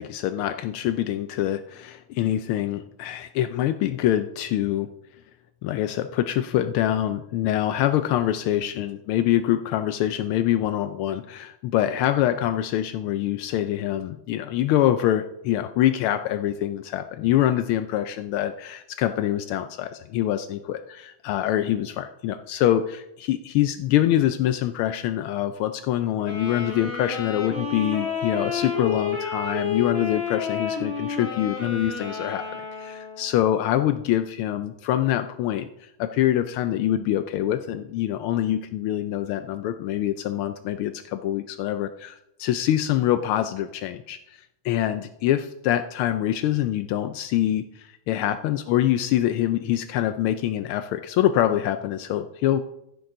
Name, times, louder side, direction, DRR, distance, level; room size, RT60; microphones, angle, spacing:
voice 1, 0.0-4.9 5.6-32.4 32.8-52.6, left 12 dB, 80° left, 10 dB, 1.4 m, -25 dB
Wind instrument woodwind instrument, 26.2-33.4, left 5 dB, 40° left, 2.9 m, -30 dB
15.0 x 7.9 x 3.8 m, 0.82 s
omnidirectional pair, 2.4 m